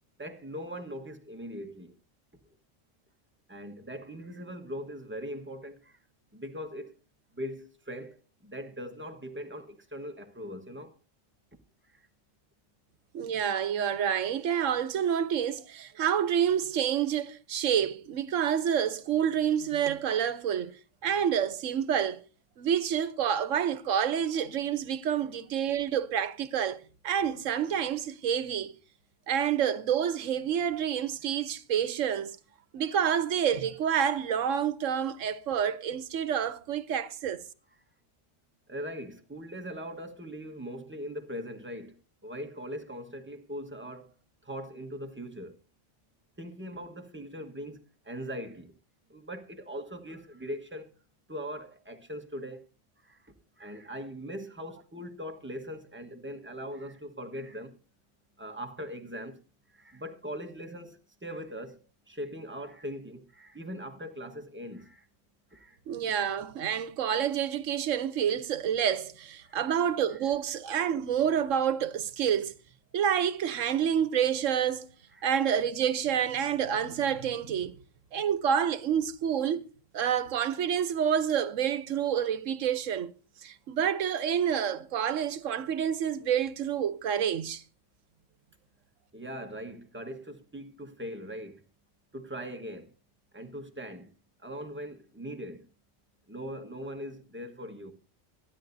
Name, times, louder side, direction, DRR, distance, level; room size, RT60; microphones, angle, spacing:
voice 1, 0.2-1.9 3.5-6.0 6.3-7.0 7.3-10.9 11.8-12.1 38.7-44.1 44.4-45.6 46.4-48.7 49.1-50.9 51.3-52.7 53.0-57.7 58.4-59.4 59.7-65.1 65.5-65.8 69.4-69.7 70.1-70.3 75.1-75.3 89.1-91.6 92.1-92.9 93.3-94.1 94.4-95.7 96.3-97.9, equal, 10° right, 1.3 m, -41 dB
voice 2, 13.1-20.7 21.0-22.2 22.6-28.7 29.3-32.4 32.7-37.4 65.9-72.5 72.9-74.9 75.2-77.8 78.1-79.6 79.9-83.1 83.4-87.6, right 8 dB, 80° right, 1.2 m, -28 dB
26.0 x 10.0 x 2.7 m
omnidirectional pair, 1.3 m